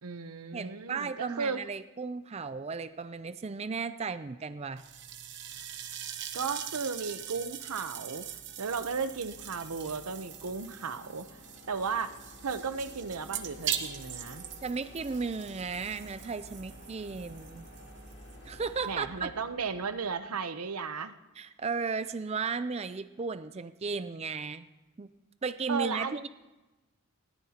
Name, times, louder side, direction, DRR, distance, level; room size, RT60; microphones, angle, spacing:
voice 1, 0.0-1.6 6.3-8.3 8.6-11.2 11.7-12.1 12.4-14.4 18.9-21.1 25.7-26.3, right 5 dB, 90° right, 11 dB, 0.8 m, -35 dB
voice 2, 0.5-4.8 14.6-17.7 18.5-19.3 21.4-24.7 25.0-25.1 25.4-26.3, right 5 dB, 30° right, 12 dB, 0.4 m, -35 dB
sound 1, 4.8-19.0, right 9 dB, 55° right, 1.0 m, -42 dB
sound 2, 7.8-20.6, left 1 dB, 60° left, 2.6 m, -52 dB
21.0 x 17.5 x 2.9 m, 1.1 s
head